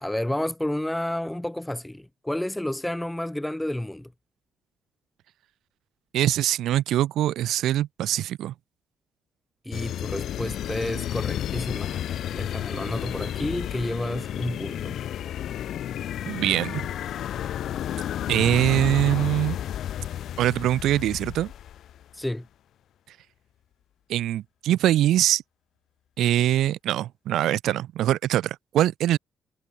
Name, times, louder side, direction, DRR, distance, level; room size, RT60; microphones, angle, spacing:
voice 1, 0.0-4.1 9.6-12.0 12.3-15.0 22.1-22.5, left 1 dB, 5° left, 0.7 m, -30 dB
voice 2, 6.1-8.5 16.3-16.8 18.3-19.6 20.4-21.5 24.1-25.4 26.2-29.2, right 13 dB, 80° right, 0.4 m, -23 dB
sound 1, 9.7-22.0, left 11 dB, 70° left, 0.7 m, -32 dB
cardioid pair, 90°, 0 cm